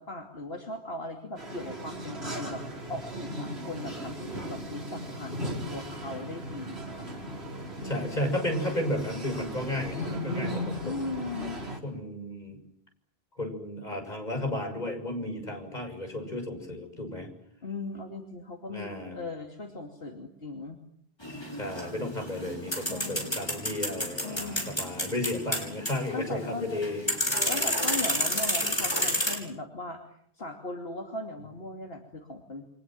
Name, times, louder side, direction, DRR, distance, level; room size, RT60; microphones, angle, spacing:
voice 1, 0.0-7.1 7.8-8.4 10.8-11.6 17.6-20.8 22.8-23.4 24.2-24.9 26.1-26.7 27.4-30.0 30.4-32.6, left 2 dB, 70° left, 2 dB, 3.0 m, -38 dB
sound 1, 1.4-11.8, equal, 80° right, 4.9 m, -37 dB
voice 2, 7.8-11.2 11.8-12.6 13.4-17.3 18.7-19.2 21.6-27.1, left 1 dB, 45° left, 4 dB, 7.0 m, -33 dB
sound 2, 21.2-29.4, equal, 25° left, 6.5 m, -30 dB
29.5 x 25.0 x 7.7 m, 0.70 s
omnidirectional pair, 1.0 m